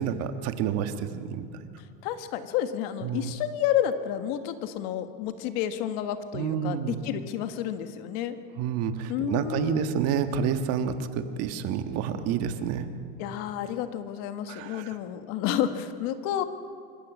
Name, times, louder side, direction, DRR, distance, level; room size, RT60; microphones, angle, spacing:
voice 1, 0.0-1.5 3.0-3.3 6.3-7.0 8.6-12.9 14.5-14.9, right 8 dB, 55° right, 8 dB, 1.5 m, -29 dB
voice 2, 2.0-8.4 9.1-9.9 13.2-16.4, left 10 dB, 65° left, 9 dB, 1.5 m, -30 dB
26.5 x 14.0 x 8.4 m, 2.3 s
supercardioid pair, 135°, 30 cm